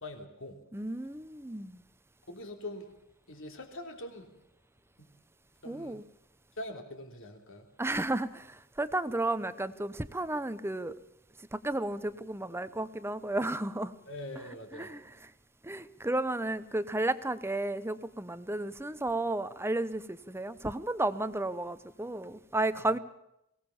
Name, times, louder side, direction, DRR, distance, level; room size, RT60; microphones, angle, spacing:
voice 1, 0.0-0.6 2.3-2.9 3.3-4.3 5.0-5.1 5.6-6.0 6.6-7.7 14.0-14.9 22.8-23.0, left 1 dB, 65° left, 5 dB, 3.4 m, -43 dB
voice 2, 0.7-1.8 5.7-6.0 7.8-10.9 11.5-13.9 14.7-15.0 15.6-23.0, right 2 dB, 10° right, 14 dB, 0.8 m, -33 dB
23.0 x 18.0 x 7.2 m, 0.82 s
head